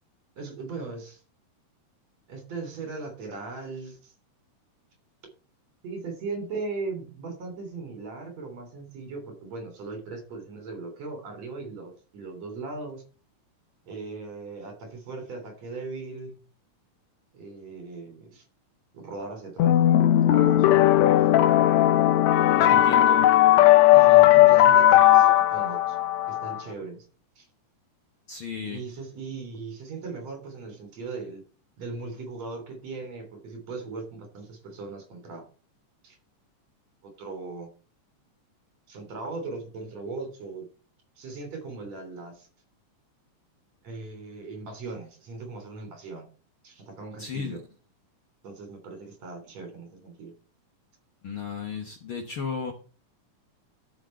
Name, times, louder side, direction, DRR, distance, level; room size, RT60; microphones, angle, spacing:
voice 1, 0.4-1.2 2.3-4.1 5.8-13.0 13.9-16.4 17.3-18.4 18.9-20.6 21.3-21.5 22.4-23.0 23.9-26.0 26.3-27.1 27.4-27.5 28.6-31.4 31.8-35.5 36.0-36.2 37.0-37.7 38.9-40.7 41.2-42.5 43.8-46.3 46.6-47.6 48.4-50.3, right 3 dB, 60° right, 5 dB, 4.4 m, -38 dB
sound 1, 19.6-26.6, left 13 dB, 75° left, 1.7 m, -17 dB
voice 2, 22.7-23.3 28.3-28.8 47.2-47.6 51.2-52.7, left 6 dB, 55° left, 4 dB, 1.6 m, -34 dB
12.0 x 6.4 x 4.5 m, 0.37 s
omnidirectional pair, 3.6 m